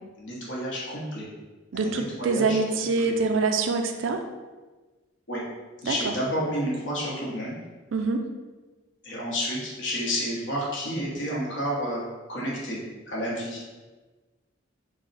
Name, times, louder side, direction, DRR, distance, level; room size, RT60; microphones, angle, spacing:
voice 1, 0.2-1.2 1.7-2.6 3.0-3.1 5.3-5.4 5.8-7.6 9.0-12.8 13.0-13.8, equal, 65° left, -4 dB, 1.1 m, -30 dB
voice 2, 1.7-4.2 5.8-6.1 7.9-8.3, right 4 dB, 70° right, 6 dB, 0.4 m, -25 dB
3.9 x 2.1 x 4.0 m, 1.2 s
head